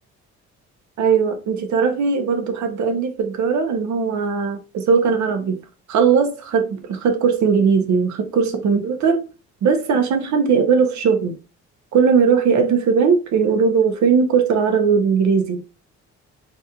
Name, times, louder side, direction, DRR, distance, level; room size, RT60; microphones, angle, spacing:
voice 1, 1.0-5.6 5.9-9.2 9.6-11.3 11.9-15.6, right 6 dB, 70° right, 0.9 m, -19 dB
4.0 x 2.5 x 2.7 m
cardioid pair, 90°, 30 cm